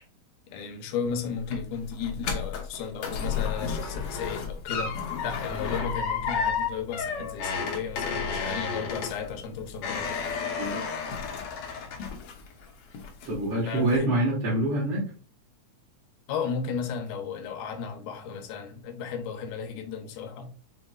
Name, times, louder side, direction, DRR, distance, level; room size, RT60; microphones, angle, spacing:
voice 1, 0.5-10.1 13.7-14.1 16.3-20.5, left 6 dB, 85° left, 2.3 m, -34 dB
sound 1, 1.1-12.6 12.9-13.5 13.9-14.0, left 6 dB, 70° left, 1.5 m, -32 dB
voice 2, 13.3-15.0, right 1 dB, 55° right, 1.9 m, -26 dB
6.0 x 3.7 x 2.3 m
omnidirectional pair, 3.5 m